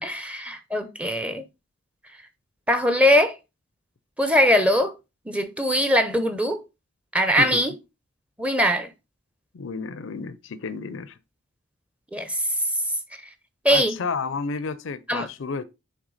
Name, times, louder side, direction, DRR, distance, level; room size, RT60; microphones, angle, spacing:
voice 1, 0.0-1.4 2.7-3.4 4.2-4.9 5.3-6.6 7.1-7.7 8.4-8.9 12.1-12.4 13.6-14.0 15.1-15.3, equal, 5° right, 0.6 m, -21 dB
voice 2, 9.5-11.2 13.7-15.6, left 4 dB, 60° left, 0.4 m, -31 dB
8.0 x 3.4 x 3.9 m
head